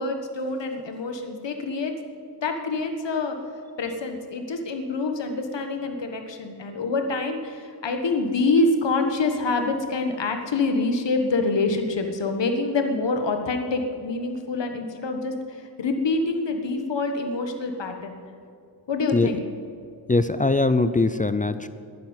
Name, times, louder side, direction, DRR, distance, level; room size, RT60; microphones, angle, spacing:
voice 1, 0.0-2.0 2.4-3.4 3.8-18.2 18.9-19.4, left 3 dB, 80° left, 5 dB, 1.6 m, -26 dB
voice 2, 20.1-21.7, left 3 dB, 20° left, 12 dB, 0.4 m, -21 dB
12.0 x 10.5 x 9.7 m, 2.4 s
wide cardioid pair, 175°, 43 cm